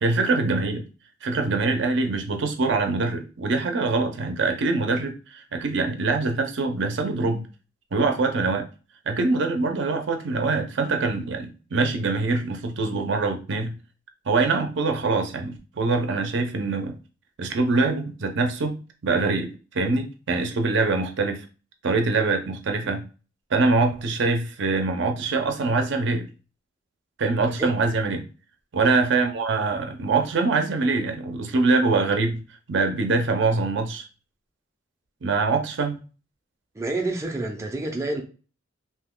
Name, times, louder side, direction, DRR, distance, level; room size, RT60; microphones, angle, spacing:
voice 1, 0.0-0.8 1.2-7.5 7.9-8.7 9.1-13.8 14.3-17.0 17.4-21.4 21.8-23.0 23.5-26.3 27.2-28.2 28.7-32.4 32.7-34.0 35.2-36.0, right 3 dB, 65° right, 5 dB, 0.5 m, -24 dB
voice 2, 27.4-27.7 36.7-38.2, right 2 dB, 15° right, 1 dB, 0.4 m, -28 dB
2.7 x 2.2 x 3.6 m, 0.35 s
head